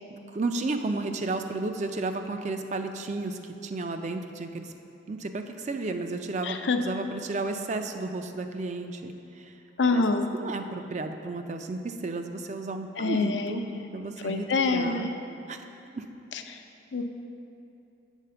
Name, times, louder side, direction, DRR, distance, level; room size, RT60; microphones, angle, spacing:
voice 1, 0.1-4.7 5.1-9.5 9.9-10.0 10.3-15.1 15.5-15.6 15.9-16.1, right 3 dB, 40° right, 6 dB, 0.4 m, -33 dB
voice 2, 6.4-6.8 9.8-10.3 13.0-13.5 14.2-15.1 16.9-17.0, left 3 dB, 75° left, 6 dB, 0.5 m, -25 dB
8.1 x 4.2 x 6.7 m, 2.7 s
head